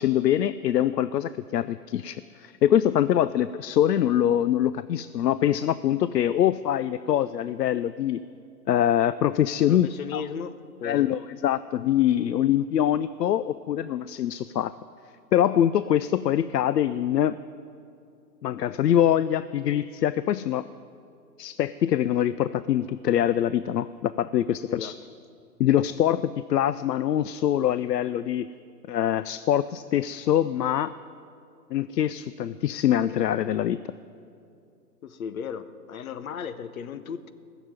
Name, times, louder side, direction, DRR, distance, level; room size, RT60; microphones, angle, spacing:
voice 1, 0.0-8.2 8.7-9.9 10.1-10.2 10.8-14.7 15.3-17.4 18.4-20.7 21.4-24.9 25.6-28.5 28.9-30.9 31.7-33.8, left 11 dB, 75° left, 15 dB, 0.5 m, -24 dB
voice 2, 9.7-11.1 24.6-25.0 35.0-37.3, left 7 dB, 55° left, 11 dB, 0.9 m, -36 dB
15.0 x 7.2 x 9.4 m, 2.5 s
figure-of-eight pair, 130°, 49 cm